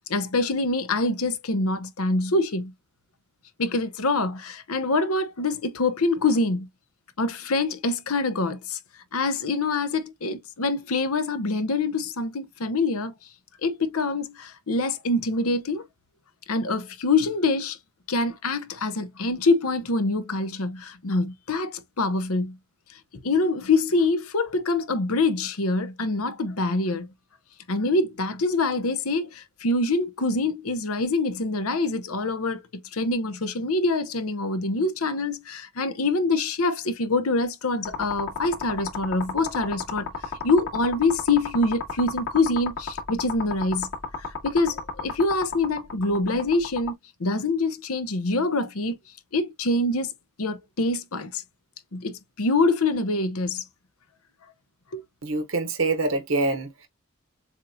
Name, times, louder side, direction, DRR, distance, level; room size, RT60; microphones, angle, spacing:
voice 1, 0.1-2.7 3.6-6.7 7.2-8.8 9.1-13.1 13.6-15.8 16.5-17.8 18.1-22.6 23.2-27.1 27.7-32.6 32.9-40.1 40.4-43.9 44.2-46.9 47.2-49.0 49.3-50.1 50.4-51.4 51.9-53.6 54.9-55.0, left 3 dB, 75° left, 0.9 m, -25 dB
sound 1, 37.8-46.9, left 5 dB, 55° left, 2.3 m, -32 dB
voice 2, 55.2-56.9, right 3 dB, 60° right, 0.9 m, -25 dB
7.3 x 2.4 x 2.7 m
head